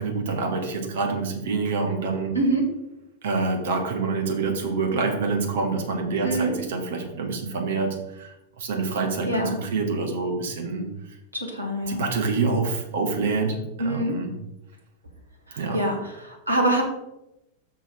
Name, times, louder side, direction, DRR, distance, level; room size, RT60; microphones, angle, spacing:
voice 1, 0.0-2.3 3.2-10.9 11.9-14.3 15.6-15.8, right 4 dB, 60° right, 3 dB, 1.5 m, -26 dB
voice 2, 2.3-2.7 6.2-6.5 9.3-9.5 11.3-12.0 13.8-14.2 15.5-16.8, right 1 dB, 85° right, 1 dB, 1.8 m, -25 dB
6.4 x 6.3 x 4.6 m, 0.90 s
figure-of-eight pair, 90°, 0 cm